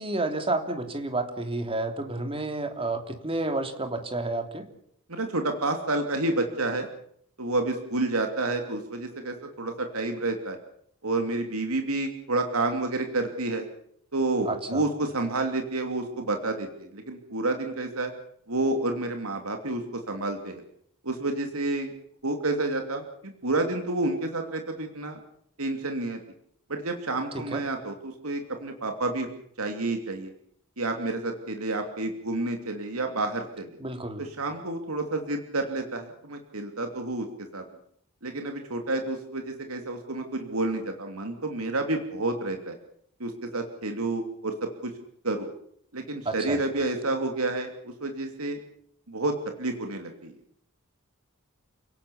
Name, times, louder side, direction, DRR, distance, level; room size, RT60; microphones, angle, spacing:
voice 1, 0.0-4.7 14.4-14.8 27.3-27.6 33.8-34.2 46.2-46.6, right 2 dB, 25° right, 6 dB, 3.2 m, -30 dB
voice 2, 5.1-6.9 7.4-10.6 11.0-13.6 14.1-18.1 18.5-20.6 21.0-21.9 22.2-25.2 25.6-26.2 26.7-29.3 29.6-30.3 30.8-33.7 34.2-37.3 37.5-37.6 38.2-42.8 43.2-44.9 45.2-45.5 45.9-48.6 49.1-50.3, right 2 dB, 85° right, 4 dB, 2.9 m, -29 dB
29.0 x 18.0 x 7.2 m, 0.68 s
head